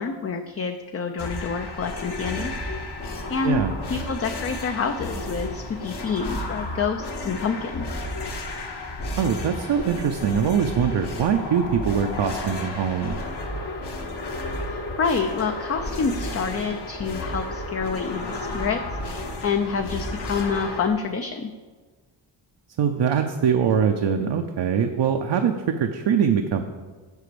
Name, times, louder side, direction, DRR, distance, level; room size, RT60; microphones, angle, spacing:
voice 1, 0.0-2.5 3.3-3.6 3.9-7.9 14.7-21.5, left 5 dB, 35° left, 6 dB, 0.4 m, -27 dB
sound 1, 1.2-20.9, left 2 dB, 60° left, 1.4 m, -32 dB
voice 2, 9.2-13.2 22.8-26.6, right 7 dB, 65° right, 5 dB, 0.7 m, -23 dB
8.2 x 5.1 x 6.8 m, 1.4 s
wide cardioid pair, 130°, 46 cm